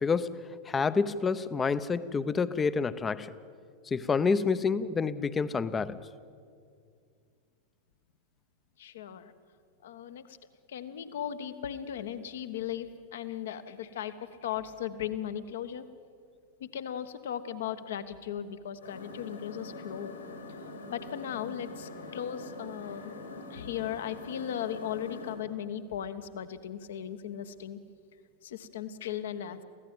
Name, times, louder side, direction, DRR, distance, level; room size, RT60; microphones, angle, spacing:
voice 1, 0.0-3.3 3.9-6.1, left 5 dB, 20° left, 14 dB, 0.7 m, -28 dB
voice 2, 8.8-9.3 9.8-10.4 10.7-15.9 16.6-20.1 20.9-23.2 23.5-27.8 28.4-29.6, left 9 dB, 60° left, 11 dB, 1.2 m, -37 dB
sound 1, 18.8-25.4, left 3 dB, 75° left, 4.4 m, -44 dB
24.5 x 16.0 x 9.1 m, 2.3 s
figure-of-eight pair, 90°, 0 cm